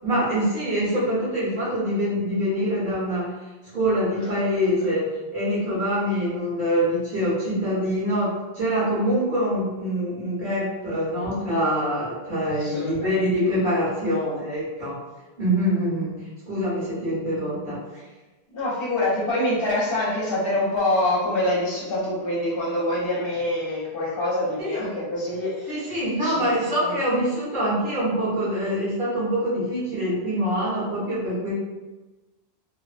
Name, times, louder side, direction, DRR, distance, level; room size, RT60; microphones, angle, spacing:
voice 1, 0.0-3.3 3.7-15.0 15.4-16.1 16.5-18.0 24.6-24.9 25.7-31.5, equal, 55° right, -10 dB, 1.4 m, -25 dB
voice 2, 12.5-13.1 18.5-26.5 26.8-27.0, left 1 dB, 65° left, -5 dB, 0.9 m, -26 dB
3.0 x 2.0 x 2.4 m, 1.2 s
omnidirectional pair, 1.1 m